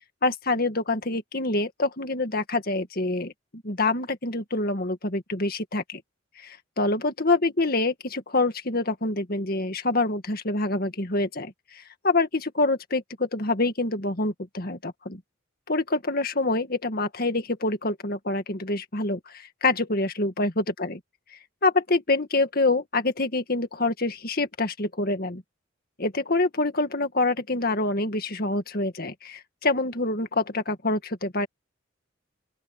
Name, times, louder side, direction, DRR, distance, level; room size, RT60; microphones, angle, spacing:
voice 1, 0.2-6.0 6.4-15.2 15.7-21.0 21.6-25.4 26.0-31.5, left 2 dB, 45° left, 1.9 m, -26 dB
open air
head